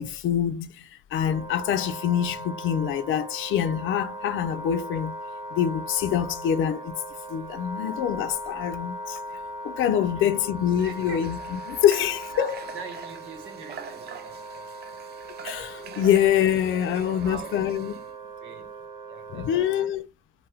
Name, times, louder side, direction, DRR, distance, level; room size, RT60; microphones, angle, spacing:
voice 1, 0.0-5.1 5.5-6.9 7.3-9.2 9.6-12.5 15.4-17.9 19.3-20.1, left 9 dB, 80° left, 0.5 m, -25 dB
Wind instrument woodwind instrument, 1.2-19.9, right 1 dB, 20° right, 1.5 m, -39 dB
voice 2, 10.0-10.4 10.8-11.3 12.0-15.0 15.9-16.1 16.7-17.6 17.9-18.1 18.4-18.7 19.1-20.0, right 5 dB, 75° right, 0.9 m, -44 dB
Water / Water tap faucet, 10.6-18.1, right 6 dB, 55° right, 0.5 m, -45 dB
2.7 x 2.1 x 3.3 m
cardioid pair, 90°, 20 cm